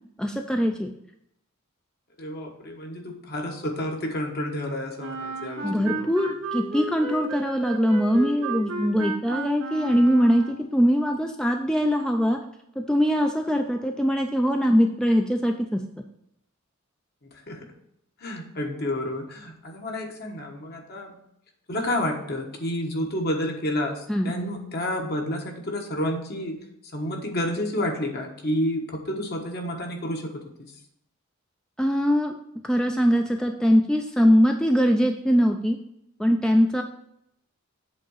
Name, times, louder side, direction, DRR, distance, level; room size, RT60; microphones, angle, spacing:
voice 1, 0.2-0.9 5.6-12.4 12.8-15.8 24.1-24.3 31.8-32.4 32.6-35.8 36.2-36.8, equal, 5° left, 3 dB, 0.4 m, -22 dB
voice 2, 2.2-6.1 17.5-17.7 18.2-21.2 21.7-26.6 26.9-30.4, left 1 dB, 50° left, 2 dB, 1.3 m, -30 dB
Wind instrument woodwind instrument, 5.0-10.7, right 2 dB, 80° right, 1.7 m, -33 dB
7.9 x 3.7 x 6.3 m, 0.77 s
head